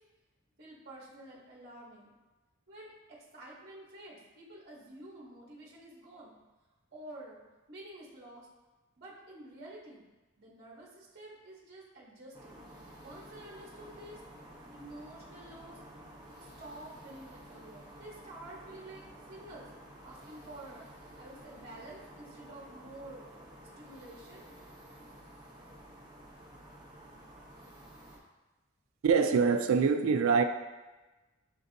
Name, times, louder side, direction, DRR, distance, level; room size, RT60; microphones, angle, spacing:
voice 1, 0.6-2.1 2.7-6.4 6.9-7.4 7.7-8.5 9.0-10.1 10.4-12.6 13.0-14.2 14.7-15.8 16.4-19.7 20.0-20.9 21.2-23.3 23.8-24.5, right 1 dB, 50° right, -4 dB, 0.9 m, -49 dB
sound 1, 12.3-28.2, right 1 dB, 20° right, 0.7 m, -52 dB
voice 2, 29.0-30.4, right 5 dB, 75° right, 8 dB, 0.3 m, -24 dB
7.1 x 2.6 x 2.6 m, 1.2 s
head